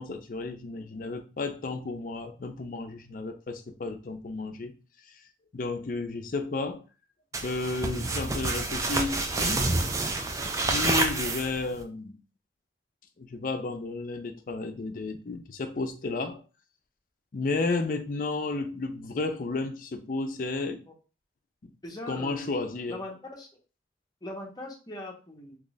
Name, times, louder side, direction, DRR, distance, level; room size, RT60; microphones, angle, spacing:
voice 1, 0.0-4.7 5.0-5.2 5.5-6.8 7.4-9.7 10.5-12.2 13.2-16.4 17.3-20.8 21.6-21.7 22.1-23.0, left 3 dB, 50° left, 0.4 m, -32 dB
sound 1, 7.3-11.8, right 2 dB, 20° right, 0.3 m, -28 dB
voice 2, 21.8-22.6 22.9-23.5 24.2-25.6, left 1 dB, 20° left, 0.7 m, -40 dB
2.9 x 2.3 x 3.9 m
head